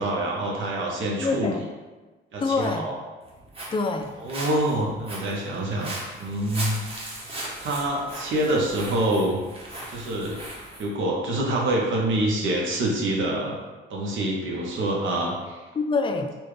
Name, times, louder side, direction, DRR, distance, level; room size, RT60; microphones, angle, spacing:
voice 1, 0.0-1.5 2.3-2.9 4.2-6.8 7.6-9.4 9.9-10.4 10.8-13.6 13.9-15.6, right 1 dB, 75° right, -2 dB, 0.9 m, -26 dB
voice 2, 1.2-1.7 2.4-2.9 3.7-4.2 15.8-16.3, left 3 dB, 25° left, 6 dB, 0.4 m, -25 dB
Walk footsteps, 3.2-10.9, right 1 dB, 30° right, 1.0 m, -38 dB
4.3 x 2.3 x 3.2 m, 1.2 s
cardioid pair, 90°, 20 cm